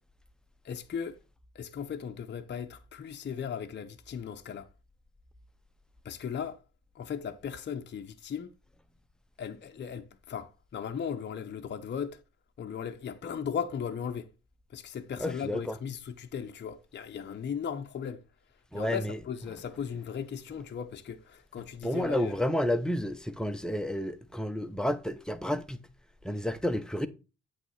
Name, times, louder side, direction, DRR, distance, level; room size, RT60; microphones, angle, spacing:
voice 1, 0.6-1.2 1.5-4.7 6.0-6.6 6.9-8.5 9.4-12.2 12.6-14.3 14.7-18.2 18.7-22.4, left 7 dB, 35° left, 0.7 m, -37 dB
voice 2, 15.2-15.7 18.7-19.2 21.8-25.8 26.2-27.1, left 1 dB, ahead, 0.6 m, -30 dB
8.3 x 3.3 x 5.5 m
cardioid pair, 90°, 30 cm